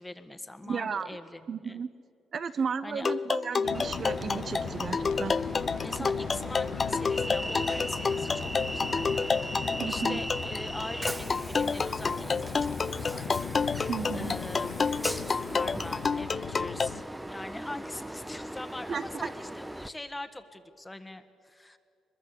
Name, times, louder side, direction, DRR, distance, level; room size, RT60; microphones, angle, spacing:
voice 1, 0.0-1.8 2.8-3.1 5.8-9.1 9.4-13.3 13.6-21.8, left 2 dB, 15° left, 10 dB, 1.6 m, -43 dB
voice 2, 0.7-1.1 1.5-1.9 2.3-5.4 6.0-6.1 9.8-10.2 13.9-14.4 18.9-19.3, right 6 dB, 50° right, 12 dB, 0.8 m, -34 dB
sound 1, 3.0-16.9, left 5 dB, 35° left, 0.5 m, -29 dB
sound 2, 3.6-17.0, left 11 dB, 80° left, 0.6 m, -40 dB
Train, 3.7-19.9, right 1 dB, 5° right, 0.8 m, -38 dB
23.0 x 21.5 x 8.4 m, 2.4 s
cardioid pair, 90°, 0 cm